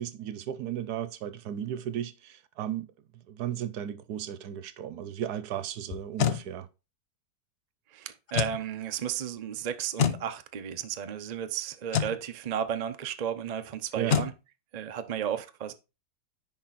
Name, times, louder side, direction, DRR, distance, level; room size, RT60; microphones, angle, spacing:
voice 1, 0.0-2.9 3.1-6.7 14.0-14.2, right 10 dB, 65° right, 1.2 m, -35 dB
sound 1, 5.9-6.4 8.3-8.6 10.0-10.2 11.9-12.2 14.1-14.3, left 8 dB, 65° left, 0.6 m, -26 dB
voice 2, 7.9-14.3 14.7-15.7, right 9 dB, 90° right, 0.3 m, -33 dB
10.0 x 4.3 x 4.1 m
omnidirectional pair, 1.9 m